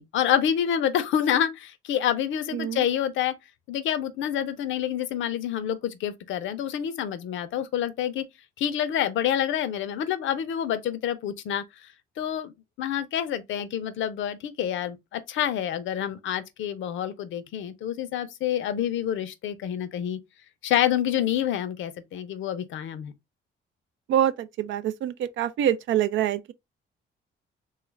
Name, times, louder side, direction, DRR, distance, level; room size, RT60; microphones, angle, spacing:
voice 1, 0.0-3.4 3.7-8.3 8.6-11.6 12.2-20.2 20.6-23.1, left 10 dB, 75° left, 0.6 m, -27 dB
voice 2, 2.5-2.8 24.1-26.5, right 11 dB, 70° right, 0.4 m, -25 dB
3.2 x 2.4 x 3.1 m
cardioid pair, 90°, 20 cm